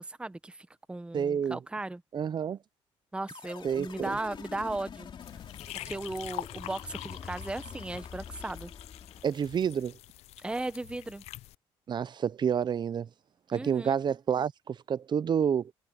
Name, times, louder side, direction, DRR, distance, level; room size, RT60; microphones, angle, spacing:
voice 1, 0.0-2.0 3.1-5.1 5.7-8.7 10.4-11.2 13.5-14.0, right 2 dB, 10° right, 0.8 m, -36 dB
voice 2, 1.1-1.6 2.1-2.6 3.6-4.2 9.2-9.9 11.9-13.1 13.5-15.7, right 7 dB, 45° right, 0.6 m, -29 dB
sound 1, 3.3-9.7, left 7 dB, 50° left, 2.9 m, -46 dB
sound 2, 5.2-11.6, left 16 dB, 80° left, 0.4 m, -45 dB
cardioid pair, 95°, 11 cm